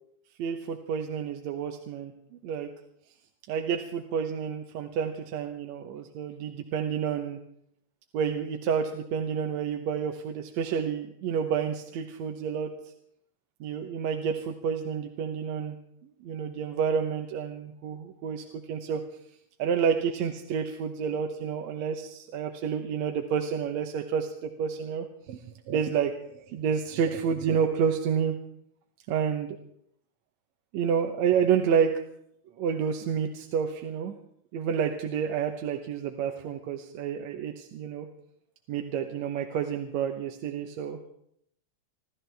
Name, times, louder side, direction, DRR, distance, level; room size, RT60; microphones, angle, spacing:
voice 1, 0.4-2.7 3.5-7.4 8.1-12.9 13.6-15.8 16.2-19.0 19.6-28.4 29.1-29.6 30.7-32.0 32.6-34.1 34.5-38.1 38.7-41.0, right 7 dB, 75° right, 4 dB, 2.2 m, -29 dB
27.0 x 13.0 x 3.4 m, 0.71 s
omnidirectional pair, 3.3 m